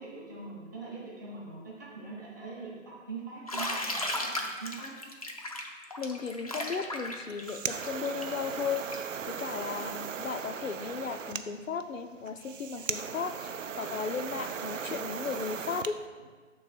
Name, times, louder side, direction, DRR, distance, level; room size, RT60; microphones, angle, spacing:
voice 1, 0.0-5.0, right 4 dB, 15° right, -6 dB, 0.7 m, -42 dB
Bathtub (filling or washing), 3.5-9.1, left 1 dB, 30° left, 0.4 m, -35 dB
voice 2, 6.0-13.5 13.8-16.0, left 5 dB, 80° left, 8 dB, 0.6 m, -35 dB
sound 1, 7.1-15.9, right 6 dB, 75° right, 0.5 m, -38 dB
6.2 x 3.8 x 5.7 m, 1.5 s
figure-of-eight pair, 145°, 39 cm